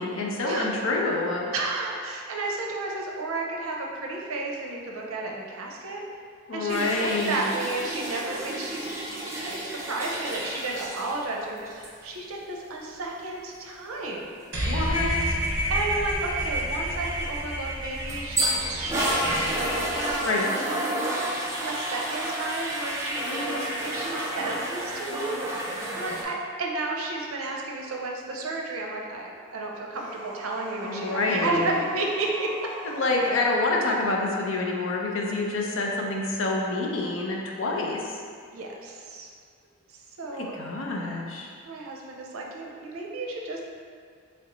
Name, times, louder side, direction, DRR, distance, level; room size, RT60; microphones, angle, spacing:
voice 1, 0.0-1.5 6.5-7.4 14.6-15.4 20.2-20.5 23.2-23.7 30.8-31.8 32.8-38.2 40.3-41.5, left 2 dB, 70° left, -1 dB, 0.5 m, -27 dB
voice 2, 1.5-6.0 6.5-9.0 9.3-14.3 15.7-32.5 38.5-39.3 40.2-40.6 41.6-43.6, right 2 dB, 85° right, -1 dB, 0.6 m, -32 dB
sound 1, 6.7-11.2 11.6-11.9 17.7-26.2, right 1 dB, 15° right, 0.4 m, -31 dB
sound 2, 14.5-20.1, equal, 60° right, 0.9 m, -30 dB
sound 3, 29.9-33.4, left 1 dB, 20° left, 1.1 m, -41 dB
3.8 x 3.2 x 3.0 m, 2.1 s
head